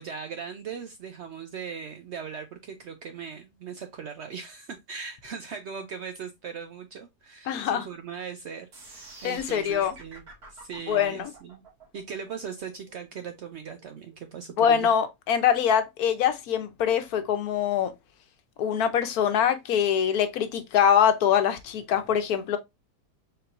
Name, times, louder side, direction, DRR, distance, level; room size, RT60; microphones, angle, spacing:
voice 1, 0.0-10.2 10.5-11.6 11.9-14.9, right 6 dB, 90° right, 0.6 m, -39 dB
voice 2, 7.5-7.8 9.2-9.9 10.9-11.3 14.6-17.9 18.6-22.6, left 8 dB, 70° left, 1.1 m, -24 dB
sound 1, 8.7-14.8, right 2 dB, 60° right, 2.0 m, -48 dB
4.3 x 3.8 x 2.5 m
omnidirectional pair, 1.8 m